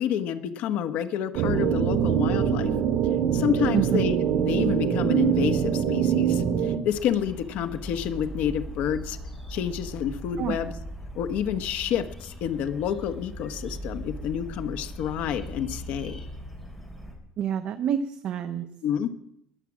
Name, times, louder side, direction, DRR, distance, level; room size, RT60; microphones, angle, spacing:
voice 1, 0.0-2.7 3.3-4.1 4.5-9.2 9.5-10.7 11.1-16.2 18.8-19.1, left 9 dB, 60° left, 9 dB, 1.1 m, -29 dB
sound 1, 1.3-6.8, right 8 dB, 80° right, 1.7 m, -24 dB
sound 2, 6.9-17.1, equal, 5° left, 3.8 m, -39 dB
voice 2, 17.4-18.7, right 9 dB, 45° right, 9 dB, 0.7 m, -27 dB
21.0 x 7.5 x 7.3 m, 0.76 s
cardioid pair, 170°, 3 cm